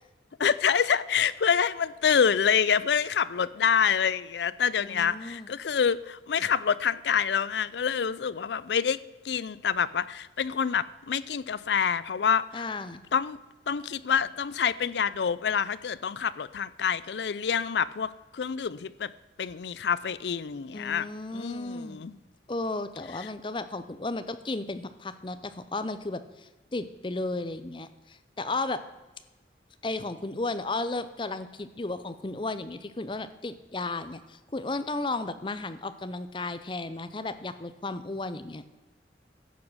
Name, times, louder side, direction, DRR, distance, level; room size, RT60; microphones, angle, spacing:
voice 1, 0.4-9.0 9.2-12.7 13.1-13.4 13.7-19.1 19.4-21.1 21.3-22.1, left 7 dB, 75° left, 18 dB, 0.4 m, -27 dB
voice 2, 4.8-5.5 12.5-13.0 20.7-22.2 22.5-28.8 29.8-38.6, left 2 dB, 25° left, 12 dB, 0.6 m, -34 dB
11.0 x 7.4 x 6.2 m, 1.1 s
head